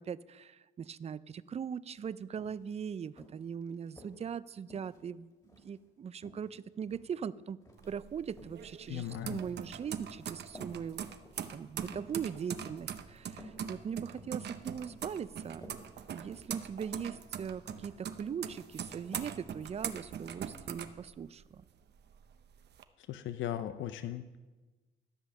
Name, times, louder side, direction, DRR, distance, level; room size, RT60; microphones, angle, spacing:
voice 1, 0.0-5.3 5.6-7.6 7.9-11.1 11.5-15.7 16.1-21.6, right 7 dB, 35° right, 18 dB, 0.4 m, -40 dB
sound 1, 2.0-2.1 2.4-2.6 3.2-4.2 4.7-5.8 6.2-7.1 7.6-7.9 8.3-8.6 9.1-10.1 10.5-10.8 11.2-11.5 11.9-12.2 12.7-12.9 13.4-13.7 14.0-14.4 14.9-15.1 15.4-15.8 16.3-16.7 17.0-17.2 17.7-18.0 18.2-18.6 19.1-19.4 19.7-19.8, equal, 20° left, 2.3 m, -54 dB
sound 2, 7.8-21.6 22.0-22.8, right 8 dB, 60° right, 0.8 m, -42 dB
voice 2, 8.9-9.4 23.1-24.4, left 11 dB, 75° left, 11 dB, 0.6 m, -38 dB
13.5 x 5.5 x 7.1 m, 1.2 s
cardioid pair, 90°, 20 cm